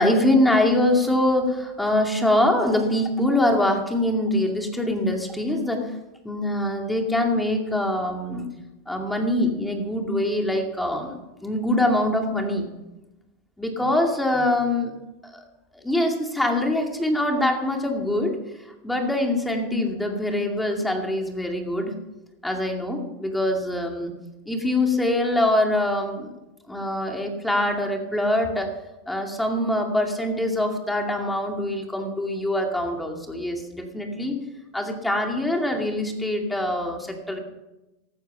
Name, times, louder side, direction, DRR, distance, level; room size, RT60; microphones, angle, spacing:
voice 1, 0.0-5.9 6.2-8.5 8.9-12.7 13.6-14.9 15.2-15.4 15.7-18.4 18.6-22.0 22.4-24.1 24.5-26.3 26.7-28.7 29.1-34.4 34.7-37.4, left 1 dB, 5° left, 2 dB, 2.3 m, -24 dB
14.5 x 13.0 x 5.7 m, 0.99 s
supercardioid pair, 140°, 0 cm